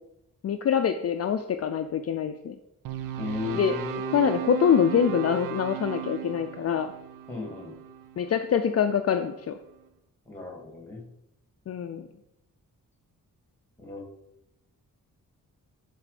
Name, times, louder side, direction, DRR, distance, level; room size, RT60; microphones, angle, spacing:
voice 1, 0.4-2.6 3.5-3.8 4.1-6.9 8.2-9.6 11.7-12.1, left 8 dB, 50° left, 6 dB, 0.4 m, -25 dB
sound 1, 2.8-9.1, right 9 dB, 75° right, 0.6 m, -36 dB
voice 2, 3.2-4.1 7.3-7.7 10.3-11.1 13.8-14.1, left 3 dB, 5° left, 1 dB, 2.0 m, -36 dB
10.5 x 4.3 x 5.1 m, 0.85 s
wide cardioid pair, 175°, 33 cm